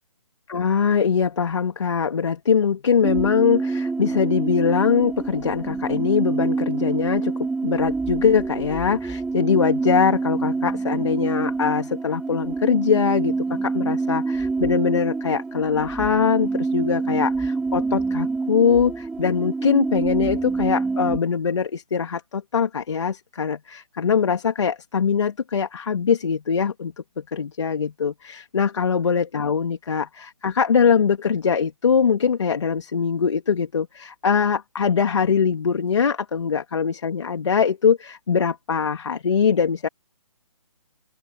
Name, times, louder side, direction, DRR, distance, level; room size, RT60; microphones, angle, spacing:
voice 1, 0.5-7.3 7.6-13.3 13.6-39.9, left 6 dB, 55° left, 3.3 m, -22 dB
sound 1, 3.0-21.2, right 3 dB, 5° right, 3.7 m, -26 dB
open air
hypercardioid pair, 165°, 18 cm